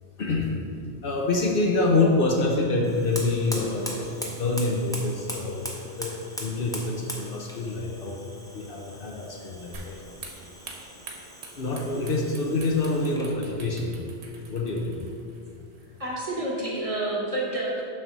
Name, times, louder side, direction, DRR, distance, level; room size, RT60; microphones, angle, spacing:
voice 1, 0.2-0.5 1.0-5.7 6.0-8.2 8.5-10.0 11.5-13.9 14.5-15.0, left 2 dB, 55° left, 0 dB, 0.8 m, -26 dB
Fire, 2.8-13.4, equal, 5° left, 0.6 m, -40 dB
sound 1, 9.7-16.3, right 3 dB, 70° right, 1.1 m, -46 dB
voice 2, 16.0-17.8, right 1 dB, 35° right, -4 dB, 1.0 m, -29 dB
7.0 x 3.3 x 5.9 m, 2.4 s
omnidirectional pair, 1.2 m